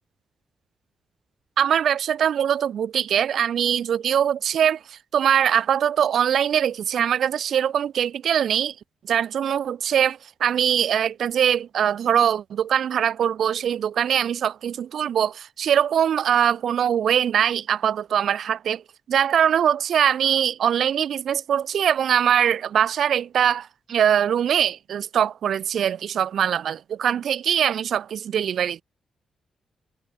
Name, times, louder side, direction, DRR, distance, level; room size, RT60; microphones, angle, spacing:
voice 1, 1.6-8.7 9.1-18.8 19.1-28.8, right 9 dB, 60° right, 2.8 m, -22 dB
wide cardioid pair, 170°, 0 cm